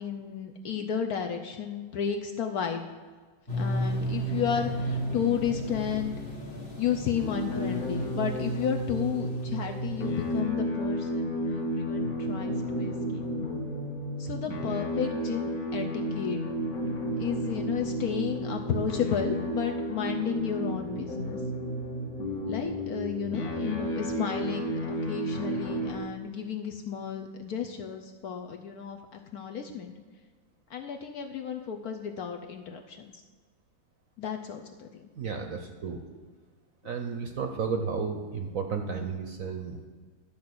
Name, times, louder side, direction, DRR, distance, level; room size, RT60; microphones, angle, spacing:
voice 1, 0.0-2.8 3.6-6.1 6.8-13.2 14.2-16.4 17.2-21.4 22.5-30.0 30.7-33.1 34.2-35.1, left 8 dB, 65° left, 4 dB, 1.0 m, -33 dB
sound 1, 3.5-10.4, equal, 30° left, 1.6 m, -34 dB
sound 2, 7.1-26.0, equal, 45° left, 1.7 m, -32 dB
voice 2, 35.2-36.0 36.8-39.8, right 5 dB, 60° right, 5 dB, 0.9 m, -33 dB
12.0 x 4.2 x 7.7 m, 1.5 s
omnidirectional pair, 2.1 m